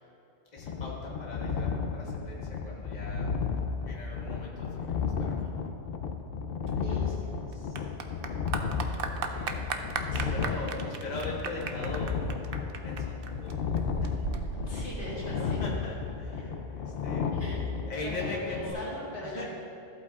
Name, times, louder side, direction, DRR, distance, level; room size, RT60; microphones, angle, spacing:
voice 1, 0.5-3.3 3.8-5.3 8.9-9.6 10.3-12.3 12.8-14.1 15.0-17.3 17.8-19.5, left 2 dB, 40° left, -4 dB, 1.3 m, -40 dB
sound 1, 0.6-18.7, left 5 dB, 65° left, 0.8 m, -33 dB
Clapping / Applause, 6.7-15.7, right 5 dB, 60° right, 0.7 m, -37 dB
voice 2, 6.8-7.8 10.1-10.6 14.7-15.6 16.4-16.5 17.3-17.6 18.0-19.5, equal, 85° left, -7 dB, 2.8 m, -41 dB
14.0 x 8.4 x 2.4 m, 3.0 s
omnidirectional pair, 1.1 m